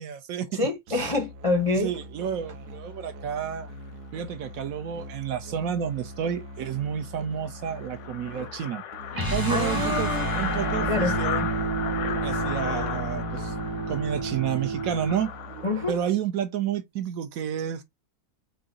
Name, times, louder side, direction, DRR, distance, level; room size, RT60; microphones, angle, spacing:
voice 1, 0.0-0.5 0.9-1.1 1.8-3.7 4.1-8.8 9.3-11.5 12.2-13.6 13.9-15.3 15.9-17.8, right 9 dB, 70° right, 1.0 m, -30 dB
voice 2, 0.5-1.9 9.5-10.3 10.9-11.1 15.6-16.0, left 2 dB, 40° left, 0.4 m, -26 dB
Musical instrument, 0.9-16.2, equal, 85° right, 1.3 m, -43 dB
sound 1, 6.2-6.3 6.7-6.8 7.0-7.1 7.4-16.1, left 9 dB, 65° left, 0.8 m, -35 dB
sound 2, 9.1-15.2, right 2 dB, 20° right, 0.6 m, -29 dB
4.7 x 2.6 x 3.8 m
omnidirectional pair, 1.7 m